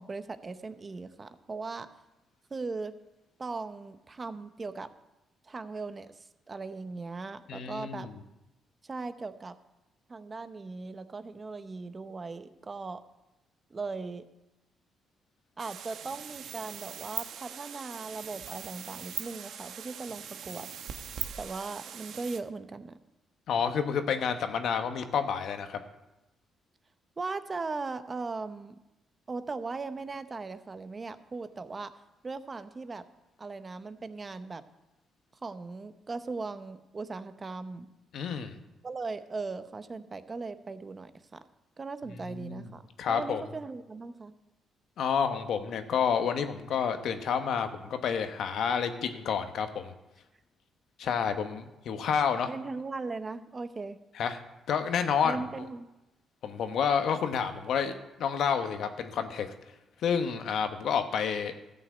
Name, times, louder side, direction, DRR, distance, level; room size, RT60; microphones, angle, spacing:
voice 1, 0.0-1.9 2.5-2.9 3.4-4.9 5.4-6.1 6.5-8.1 8.8-9.6 10.1-13.0 13.7-14.2 15.6-20.7 21.4-23.0 27.2-28.8 29.3-31.9 32.2-33.0 33.4-34.6 35.4-37.9 38.8-41.4 41.8-44.3 52.5-54.0 55.2-55.9, right 3 dB, 30° right, 11 dB, 0.8 m, -38 dB
voice 2, 7.5-8.1 23.5-25.8 38.1-38.6 42.2-42.7 43.0-43.4 45.0-49.9 51.0-52.5 54.1-54.4 54.7-55.4 56.4-57.9 58.2-59.5 60.0-61.5, left 7 dB, 70° left, 8 dB, 1.1 m, -29 dB
sound 1, 15.6-22.4, right 8 dB, 70° right, 0.9 m, -41 dB
13.5 x 5.9 x 8.0 m, 0.97 s
cardioid pair, 90°, 0 cm